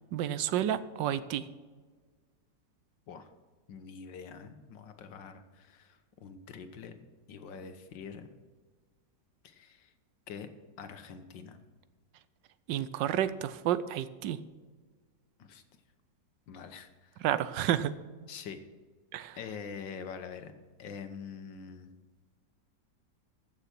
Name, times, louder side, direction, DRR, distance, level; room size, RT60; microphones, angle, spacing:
voice 1, 0.1-1.5 12.7-14.4 17.2-17.9 19.1-19.4, right 11 dB, 85° right, 15 dB, 1.4 m, -30 dB
voice 2, 3.7-6.9 7.3-8.3 9.4-9.9 10.3-10.5 10.8-11.6 15.4-15.6 16.5-17.3 18.3-18.6 19.4-20.5 20.8-21.9, left 6 dB, 90° left, 8 dB, 1.8 m, -45 dB
15.0 x 6.9 x 6.0 m, 1.4 s
omnidirectional pair, 1.9 m